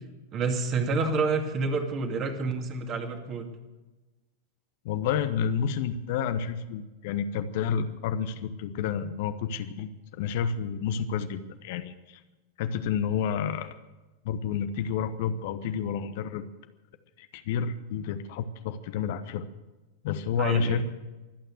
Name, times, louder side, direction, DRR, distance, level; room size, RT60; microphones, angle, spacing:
voice 1, 0.3-3.5 20.4-20.8, right 4 dB, 30° right, 4 dB, 2.5 m, -28 dB
voice 2, 4.8-12.2 12.6-13.8 14.2-16.4 17.2-19.5 20.0-20.8, left 7 dB, 50° left, 10 dB, 1.0 m, -30 dB
24.0 x 9.1 x 6.6 m, 1.1 s
figure-of-eight pair, 90°, 0 cm